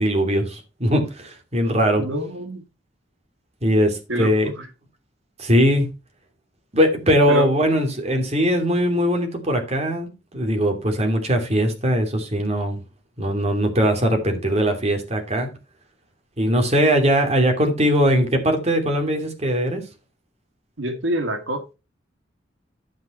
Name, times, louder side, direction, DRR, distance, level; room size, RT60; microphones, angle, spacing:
voice 1, 0.0-2.1 3.6-4.5 5.4-5.9 6.7-12.8 13.2-15.5 16.4-19.8, equal, 35° right, 2.8 m, -20 dB
voice 2, 2.0-2.6 4.1-4.3 7.3-7.5 20.8-21.7, equal, 90° right, 2.1 m, -26 dB
11.5 x 5.7 x 4.4 m
head